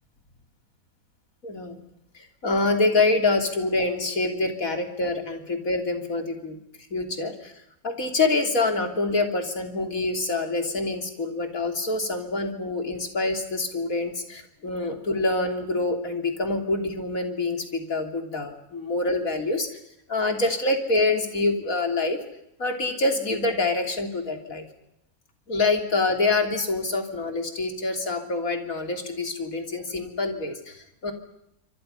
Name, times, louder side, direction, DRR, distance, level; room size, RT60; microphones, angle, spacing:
voice 1, 1.4-1.8 2.1-6.6 6.9-7.5 7.8-19.7 20.1-22.2 22.6-24.6 25.5-31.1, left 3 dB, 65° left, 4 dB, 3.6 m, -26 dB
27.5 x 25.5 x 5.5 m, 0.82 s
omnidirectional pair, 1.5 m